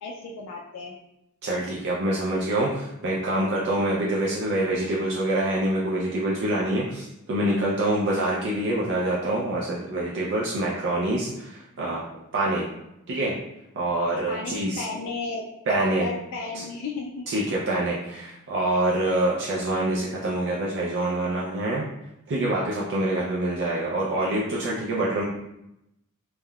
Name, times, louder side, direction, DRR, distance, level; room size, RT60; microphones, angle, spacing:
voice 1, 0.0-0.9 14.3-17.3, left 3 dB, 90° left, -1 dB, 0.4 m, -34 dB
voice 2, 1.4-12.0 12.3-12.7 13.1-13.3 13.8-14.8 15.7-16.1 16.5-16.6 17.3-21.8 22.3-25.2, right 1 dB, 55° right, -5 dB, 0.5 m, -26 dB
3.4 x 2.1 x 2.3 m, 0.85 s
head